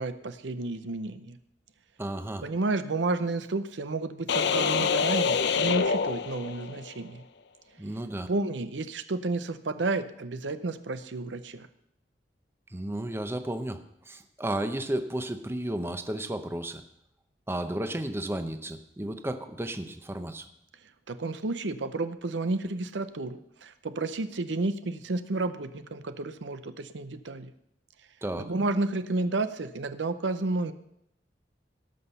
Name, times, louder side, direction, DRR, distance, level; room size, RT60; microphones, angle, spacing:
voice 1, 0.0-1.4 2.4-7.2 8.3-11.7 21.1-27.5 28.4-30.7, right 3 dB, 85° right, 11 dB, 0.7 m, -31 dB
voice 2, 2.0-2.5 7.8-8.3 12.7-13.8 14.1-16.8 17.5-20.5 28.2-28.5, right 1 dB, 15° right, 8 dB, 0.7 m, -33 dB
sound 1, 4.3-6.9, left 6 dB, 65° left, 0.6 m, -26 dB
18.0 x 6.1 x 5.6 m, 0.78 s
head